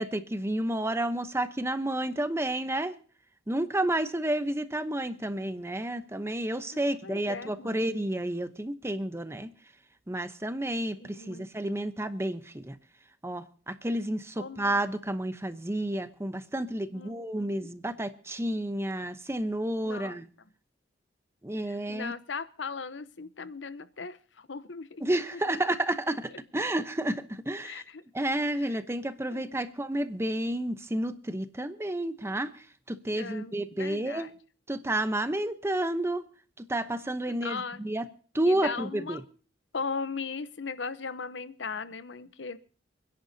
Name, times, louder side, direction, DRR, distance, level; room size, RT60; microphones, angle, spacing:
voice 1, 0.0-3.0 3.5-9.5 10.1-12.8 13.2-20.3 21.4-22.1 25.0-27.8 28.1-34.3 34.7-36.3 36.6-38.0 38.3-39.2, right 1 dB, 15° right, 10 dB, 0.9 m, -31 dB
voice 2, 6.7-7.9 11.0-11.5 14.4-14.8 16.9-17.7 19.8-20.2 21.7-25.0 25.3-25.6 26.3-26.4 27.6-28.0 28.6-28.8 29.3-29.5 33.1-34.3 37.3-37.8 38.5-39.2 39.7-42.6, left 5 dB, 70° left, 13 dB, 0.9 m, -38 dB
29.0 x 10.5 x 2.8 m, 0.41 s
head